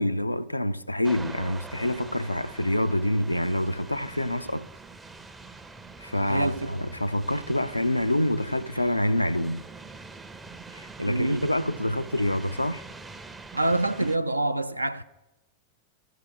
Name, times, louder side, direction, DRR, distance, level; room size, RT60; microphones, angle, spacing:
voice 1, 0.0-4.7 6.0-9.7 10.7-12.8, left 1 dB, 85° left, 0.3 m, -27 dB
sound 1, 1.0-14.2, right 3 dB, 10° right, 0.5 m, -44 dB
voice 2, 6.3-6.8 11.1-11.5 13.5-15.0, right 2 dB, 85° right, 0.3 m, -26 dB
14.0 x 4.7 x 6.4 m
figure-of-eight pair, 90°, 0 cm